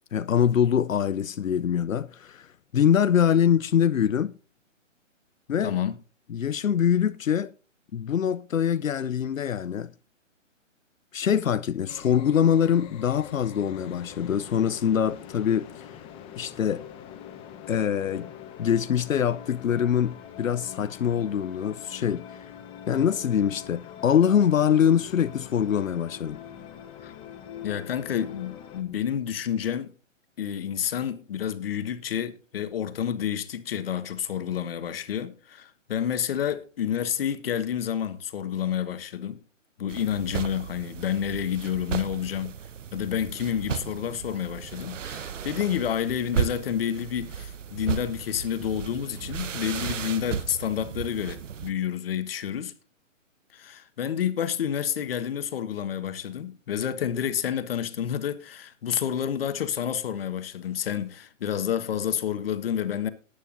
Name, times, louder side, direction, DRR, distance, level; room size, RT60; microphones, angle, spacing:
voice 1, 0.1-4.4 5.5-5.7 6.3-7.5 7.9-9.9 11.1-16.0 16.4-16.8 17.7-18.3 18.6-22.5 22.9-26.4, left 8 dB, 90° left, 0.7 m, -24 dB
voice 2, 5.6-6.0 27.0-27.1 27.6-29.9 30.4-39.4 39.8-42.5 42.9-52.7 53.5-63.1, left 9 dB, 45° left, 1.5 m, -29 dB
sound 1, 11.9-28.8, left 9 dB, 15° left, 1.1 m, -43 dB
sound 2, 39.9-51.7, right 7 dB, 75° right, 0.9 m, -35 dB
19.0 x 8.2 x 2.6 m
hypercardioid pair, 150°, 39 cm